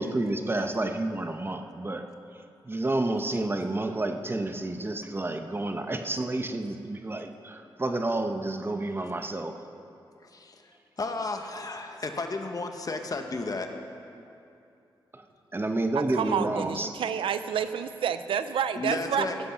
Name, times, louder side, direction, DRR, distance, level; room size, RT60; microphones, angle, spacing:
voice 1, 0.0-2.1 2.6-9.6 15.1-15.2 15.5-16.9, right 2 dB, 25° right, 6 dB, 1.0 m, -30 dB
voice 2, 10.2-13.7 18.8-19.4, left 3 dB, 45° left, 5 dB, 1.2 m, -33 dB
voice 3, 16.1-19.3, right 8 dB, 90° right, 11 dB, 0.5 m, -29 dB
16.0 x 8.0 x 5.8 m, 2.7 s
cardioid pair, 65°, 9 cm